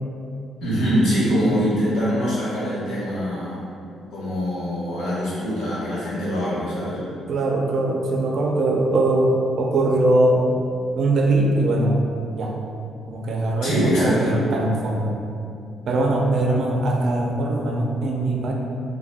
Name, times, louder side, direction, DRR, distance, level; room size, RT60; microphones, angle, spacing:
voice 1, 0.6-3.7 4.1-7.0 13.6-14.4, equal, 85° left, -9 dB, 1.1 m, -23 dB
voice 2, 7.3-10.5 11.0-12.0 12.3-12.5 13.1-15.2 15.9-18.5, right 2 dB, 65° right, 0 dB, 0.4 m, -21 dB
2.4 x 2.1 x 3.4 m, 2.5 s
cardioid pair, 90°, 0 cm